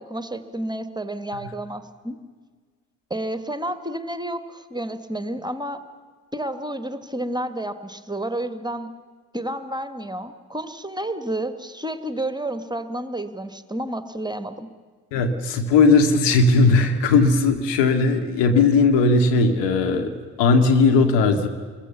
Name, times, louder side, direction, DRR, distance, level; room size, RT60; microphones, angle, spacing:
voice 1, 0.0-2.2 3.1-5.8 6.3-8.9 9.3-14.7, right 1 dB, 10° right, 10 dB, 1.4 m, -30 dB
voice 2, 15.1-20.1 20.4-21.5, left 3 dB, 65° left, 6 dB, 2.1 m, -17 dB
26.5 x 22.5 x 7.1 m, 1.5 s
figure-of-eight pair, 40°, 46 cm